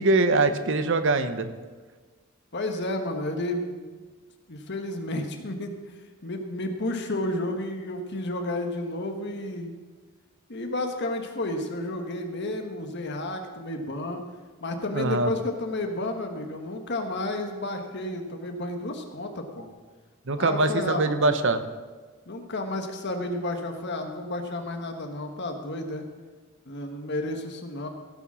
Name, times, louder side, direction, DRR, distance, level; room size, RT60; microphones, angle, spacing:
voice 1, 0.0-1.5 14.9-15.3 20.3-21.6, right 2 dB, 60° right, 10 dB, 0.9 m, -23 dB
voice 2, 2.5-4.0 4.5-5.8 6.2-9.7 10.5-14.2 14.6-19.7 20.4-21.4 22.3-26.0 26.7-27.9, left 1 dB, 55° left, 4 dB, 1.3 m, -31 dB
16.5 x 7.0 x 6.2 m, 1.4 s
head